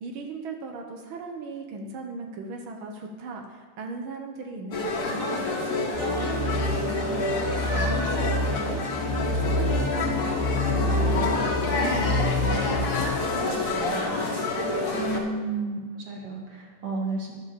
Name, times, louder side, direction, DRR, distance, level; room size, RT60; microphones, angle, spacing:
voice 1, 0.0-5.5 6.0-7.3 7.6-10.3 10.7-14.4, right 2 dB, 85° right, 3 dB, 1.1 m, -37 dB
sound 1, 4.7-15.2, left 2 dB, 45° left, 1.3 m, -28 dB
sound 2, 5.9-13.2, left 2 dB, 90° left, 2.5 m, -28 dB
voice 2, 14.9-15.8 16.1-17.3, right 2 dB, 35° right, -2 dB, 2.1 m, -31 dB
12.5 x 6.3 x 6.9 m, 1.5 s
omnidirectional pair, 3.7 m